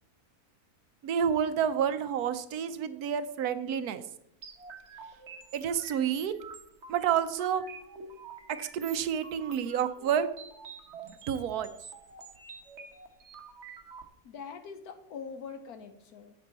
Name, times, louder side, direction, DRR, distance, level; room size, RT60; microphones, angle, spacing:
voice 1, 1.0-4.0 5.5-6.3 6.9-7.6 8.6-10.3 11.1-11.7, right 8 dB, 80° right, 11 dB, 1.2 m, -29 dB
sound 1, 4.4-14.0, right 5 dB, 50° right, 1.2 m, -48 dB
voice 2, 14.2-16.3, left 6 dB, 75° left, 7 dB, 1.3 m, -43 dB
10.0 x 7.9 x 4.0 m, 0.79 s
omnidirectional pair, 1.6 m